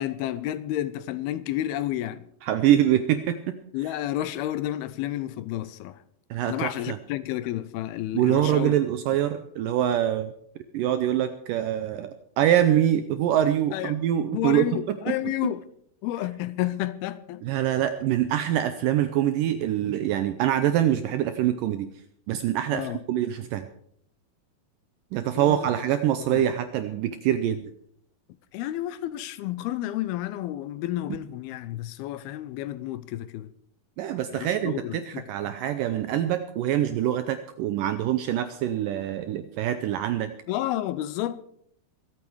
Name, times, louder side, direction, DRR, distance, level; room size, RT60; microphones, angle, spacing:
voice 1, 0.0-2.3 3.7-6.0 6.5-8.7 13.7-14.0 14.3-15.6 16.0-17.4 22.7-23.0 25.4-25.7 26.3-26.4 28.5-33.5 34.3-35.3 40.5-41.4, left 14 dB, 80° left, 2.4 m, -31 dB
voice 2, 2.4-3.6 6.3-7.0 8.1-10.3 10.7-12.1 12.4-14.7 15.1-15.2 15.4-15.5 17.4-21.9 22.3-23.7 25.1-27.7 34.0-40.3, right 11 dB, 85° right, 1.9 m, -24 dB
24.5 x 8.6 x 4.7 m
omnidirectional pair, 4.7 m